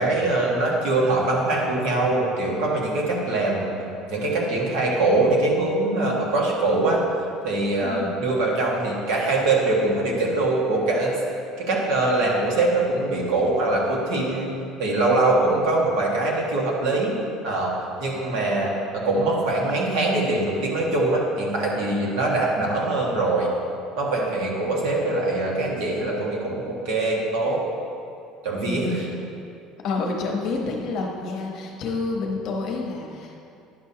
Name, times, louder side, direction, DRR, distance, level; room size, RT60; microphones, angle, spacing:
voice 1, 0.0-3.7 4.1-7.0 7.4-11.1 11.7-14.5 14.8-17.1 17.4-17.7 18.0-23.5 24.0-27.6 28.4-29.1, right 2 dB, 70° right, -2 dB, 1.5 m, -23 dB
voice 2, 7.8-8.2 24.6-25.1 28.6-29.2 29.8-33.4, left 3 dB, 45° left, 0 dB, 1.0 m, -29 dB
10.0 x 6.8 x 2.8 m, 2.5 s
cardioid pair, 170°, 0 cm